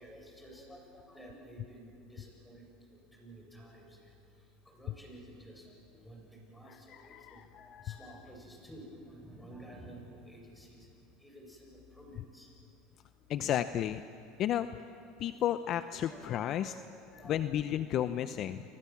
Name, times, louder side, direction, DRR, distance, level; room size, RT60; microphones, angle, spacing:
voice 1, 0.0-4.1 4.7-5.7 6.0-10.9 11.2-12.5 16.1-17.5 17.9-18.0, right 1 dB, 5° left, 0 dB, 7.6 m, -52 dB
voice 2, 6.7-8.2 13.3-14.0 14.4-14.7 15.2-16.7 17.2-18.6, left 11 dB, 45° left, 12 dB, 0.8 m, -33 dB
29.5 x 24.0 x 7.4 m, 2.8 s
supercardioid pair, 120°, 0 cm